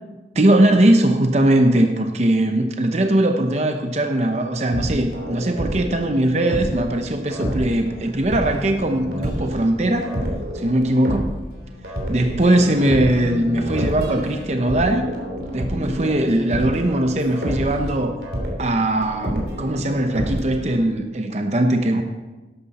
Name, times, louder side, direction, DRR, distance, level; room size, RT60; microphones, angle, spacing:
voice 1, 0.3-10.1 10.5-11.4 12.1-15.1 15.5-18.2 18.6-22.0, right 1 dB, 40° right, 5 dB, 0.8 m, -20 dB
sound 1, 4.7-20.9, equal, 70° right, 3.0 m, -29 dB
12.5 x 11.5 x 4.2 m, 1.2 s
head